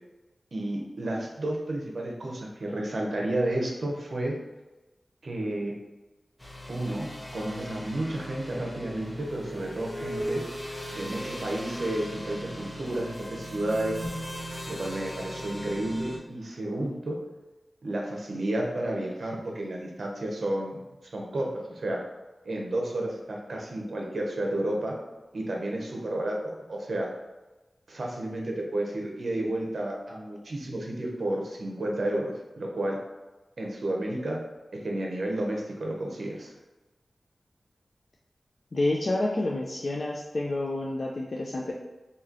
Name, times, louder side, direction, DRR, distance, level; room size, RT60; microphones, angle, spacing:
voice 1, 0.5-4.4 5.2-5.7 6.7-10.4 10.9-14.1 14.7-17.2 17.8-22.0 22.4-25.0 25.3-27.1 27.9-33.0 33.6-34.4 34.7-36.5, right 1 dB, 70° right, -1 dB, 0.8 m, -31 dB
sound 1, 6.4-16.2, equal, 15° left, 0.9 m, -38 dB
voice 2, 38.7-41.7, left 2 dB, 55° left, -2 dB, 0.4 m, -29 dB
3.1 x 2.8 x 3.7 m, 1.1 s
wide cardioid pair, 65°, 0 cm